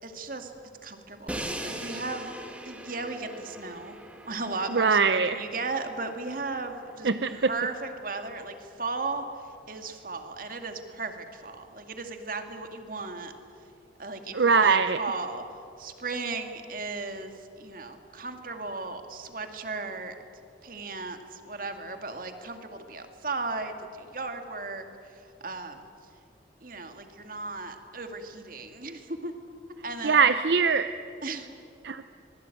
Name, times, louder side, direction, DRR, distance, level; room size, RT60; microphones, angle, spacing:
voice 1, 0.0-0.5 0.8-2.3 2.6-9.3 9.7-13.3 14.0-15.4 15.8-20.2 20.6-25.9 26.6-29.3 29.8-30.2 31.2-31.5, right 3 dB, 50° right, 6 dB, 2.2 m, -36 dB
Crash cymbal, 1.3-7.3, right 1 dB, 5° right, 1.8 m, -41 dB
voice 2, 4.7-5.4 7.0-7.4 14.3-15.0 30.0-30.9 31.8-32.0, right 5 dB, 70° right, 10 dB, 0.7 m, -22 dB
25.0 x 21.0 x 9.2 m, 2.5 s
head